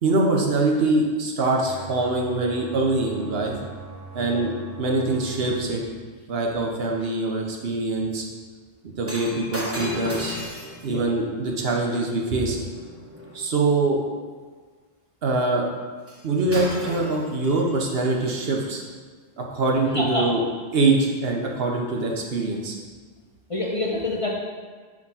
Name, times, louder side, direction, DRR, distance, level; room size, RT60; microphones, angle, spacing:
voice 1, 0.0-3.6 4.1-5.8 6.3-8.2 9.0-10.4 10.8-12.6 13.3-14.0 15.2-15.7 16.2-18.8 19.4-20.4 20.7-22.8, right 2 dB, 65° right, 0 dB, 1.0 m, -23 dB
sound 1, 1.6-5.6, right 3 dB, 40° right, 0.8 m, -41 dB
voice 2, 4.2-4.5 10.9-11.0 19.9-20.3 23.5-24.3, left 2 dB, 40° left, -2 dB, 0.6 m, -27 dB
Shatter, 9.0-13.4 16.1-16.2 16.5-18.0 18.7-18.9, equal, 15° right, 0.9 m, -36 dB
4.9 x 3.6 x 5.5 m, 1.5 s
omnidirectional pair, 1.1 m